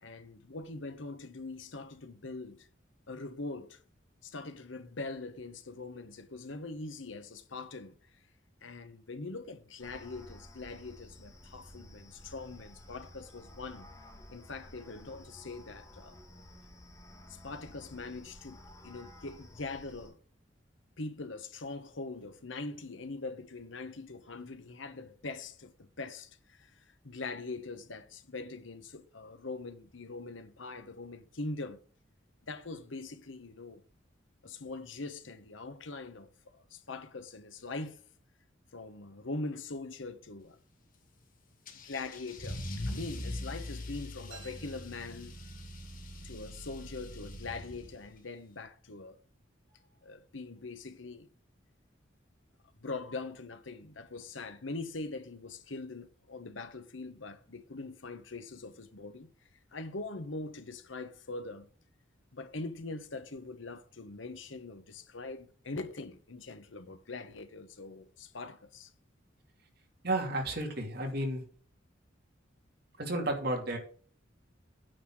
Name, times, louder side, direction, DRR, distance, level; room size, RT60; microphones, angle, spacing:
voice 1, 0.0-2.7 3.1-3.8 4.2-8.0 8.6-13.9 14.3-16.2 17.3-20.2 21.0-31.8 32.5-33.8 34.4-38.0 38.7-40.6 41.8-45.3 46.2-49.2 50.0-51.3 52.8-59.3 59.7-61.7 62.3-68.9, left 3 dB, 75° left, 1.2 m, -42 dB
sound 1, 9.8-20.1, left 1 dB, 15° left, 1.9 m, -53 dB
Car / Engine starting / Accelerating revving vroom, 41.7-48.2, left 1 dB, 45° left, 1.7 m, -42 dB
sound 2, 44.3-46.0, right 5 dB, 80° right, 3.3 m, -56 dB
voice 2, 70.0-71.4 73.0-73.8, right 1 dB, 55° right, 2.6 m, -32 dB
9.2 x 4.2 x 7.4 m
head